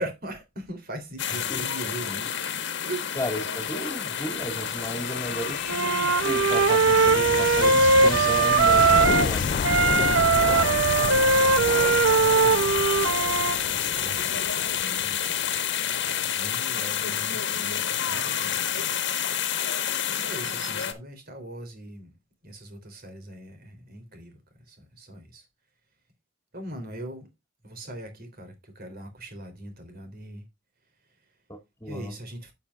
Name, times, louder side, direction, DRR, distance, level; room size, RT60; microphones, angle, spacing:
voice 1, 0.0-2.5 2.8-3.2 5.5-5.6 11.6-19.2 20.1-22.2 22.4-25.5 26.5-27.3 27.6-30.5 30.9-31.4 31.9-32.5, right 1 dB, 50° right, 3.3 m, -41 dB
sound 1, 1.2-20.9, left 9 dB, 60° left, 1.5 m, -29 dB
sound 2, 2.5-16.0, left 5 dB, 45° left, 0.3 m, -32 dB
voice 2, 3.2-9.6 18.1-18.3 31.5-32.1, equal, 15° left, 2.4 m, -34 dB
Wind instrument woodwind instrument, 5.7-9.3 9.6-13.6, right 4 dB, 90° right, 0.8 m, -20 dB
11.5 x 7.3 x 2.4 m
head